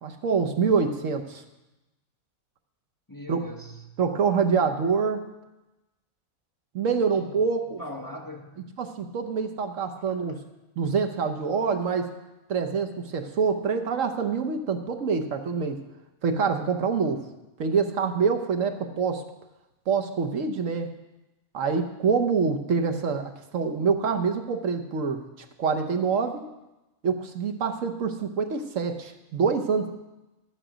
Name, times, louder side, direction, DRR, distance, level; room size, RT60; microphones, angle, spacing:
voice 1, 0.0-1.4 3.3-3.4 4.0-5.2 6.7-7.8 8.8-10.4 10.8-12.1 12.5-15.8 16.2-17.2 17.6-19.2 19.9-20.9 21.5-25.2 25.6-26.4 27.0-29.9, right 5 dB, 65° right, 6 dB, 1.2 m, -26 dB
voice 2, 3.1-4.0 7.1-7.3 7.8-8.6, left 1 dB, 15° left, 0 dB, 1.1 m, -40 dB
12.5 x 9.0 x 5.0 m, 0.99 s
omnidirectional pair, 1.5 m